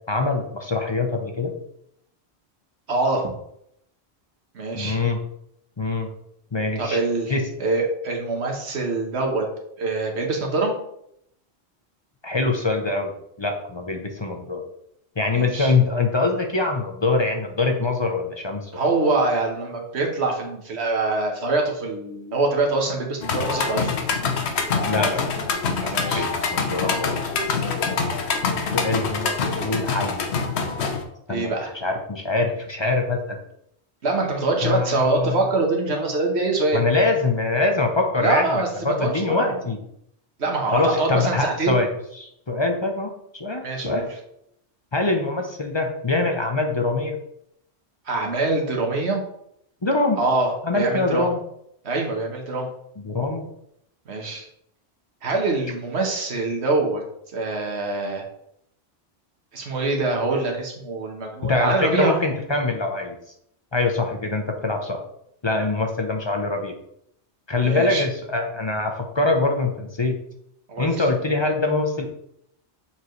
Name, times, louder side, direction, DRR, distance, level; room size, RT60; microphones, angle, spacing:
voice 1, 0.1-1.5 4.7-5.2 5.8-6.1 6.5-7.0 7.3-7.4 12.2-13.1 13.4-14.6 15.2-18.7 24.8-27.3 28.7-30.3 31.3-31.5 31.8-33.4 34.6-35.5 36.7-38.5 38.8-39.8 40.7-41.9 42.2-44.0 44.9-47.2 49.8-50.2 50.6-51.4 53.0-53.5 61.4-63.2 63.7-65.0 65.4-66.7 67.5-70.2 70.8-72.1, left 3 dB, 30° left, 3 dB, 0.6 m, -24 dB
voice 2, 2.9-3.3 4.5-5.0 6.8-7.3 7.6-9.5 9.8-10.7 15.3-15.7 18.7-24.0 25.9-26.3 31.3-31.7 34.0-36.9 38.2-39.6 40.4-41.8 43.6-44.1 48.1-49.2 50.2-51.3 51.8-52.7 54.1-54.5 55.2-57.0 57.3-58.2 59.5-62.2 67.6-68.0 70.7-71.0, right 3 dB, 75° right, 1 dB, 1.5 m, -24 dB
sound 1, 23.2-31.0, left 5 dB, 75° left, 1.1 m, -25 dB
6.8 x 4.6 x 3.2 m, 0.74 s
omnidirectional pair, 1.1 m